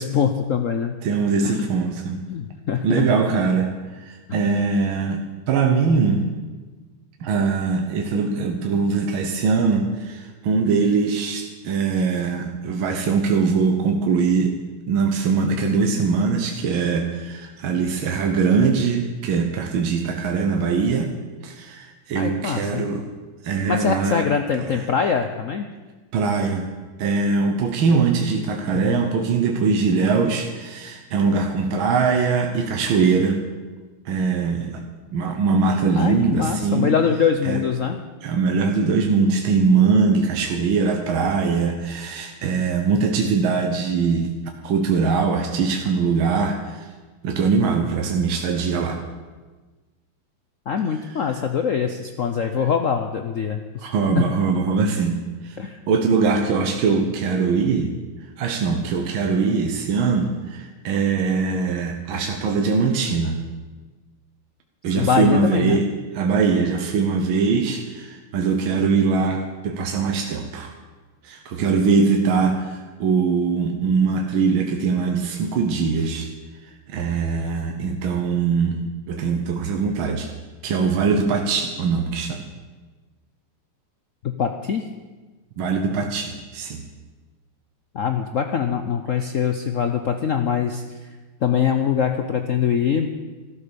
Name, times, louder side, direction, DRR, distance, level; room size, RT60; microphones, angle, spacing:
voice 1, 0.0-1.0 1.4-1.7 2.3-3.1 22.1-22.8 23.7-25.6 28.7-29.1 36.0-38.0 50.7-54.3 55.6-55.8 65.0-65.8 84.2-84.9 87.9-91.1 91.4-93.1, left 7 dB, 80° left, 6 dB, 0.7 m, -23 dB
voice 2, 1.0-2.2 2.8-5.2 5.5-6.3 7.2-14.6 14.9-21.1 21.4-23.0 23.4-24.3 26.1-26.7 27.0-33.4 34.1-34.8 35.1-36.9 37.5-37.6 38.2-44.3 44.6-46.9 47.2-49.0 53.8-55.2 55.4-55.6 55.9-57.9 58.4-63.4 64.8-65.9 66.1-70.7 71.2-76.3 76.9-78.8 79.1-80.3 80.6-82.4 85.6-86.8, right 5 dB, 70° right, 3 dB, 1.8 m, -21 dB
13.0 x 12.5 x 7.0 m, 1.3 s
omnidirectional pair, 2.4 m